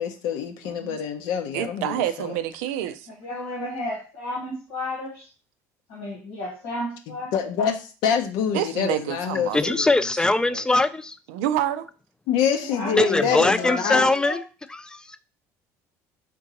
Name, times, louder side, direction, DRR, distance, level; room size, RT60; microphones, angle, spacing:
voice 1, 0.0-2.3 7.3-9.9 12.3-14.1, left 7 dB, 75° left, 5 dB, 0.6 m, -26 dB
voice 2, 0.6-1.0 1.5-3.1 8.5-9.6 10.2-10.7 11.3-11.9, right 11 dB, 85° right, 11 dB, 0.4 m, -28 dB
voice 3, 3.1-5.3 5.9-7.3 12.6-14.4, left 1 dB, 90° left, -5 dB, 1.5 m, -32 dB
voice 4, 9.5-11.2 13.0-14.4 14.8-15.2, left 2 dB, 10° left, 12 dB, 0.3 m, -21 dB
3.8 x 3.6 x 2.8 m, 0.36 s
supercardioid pair, 90°, 8 cm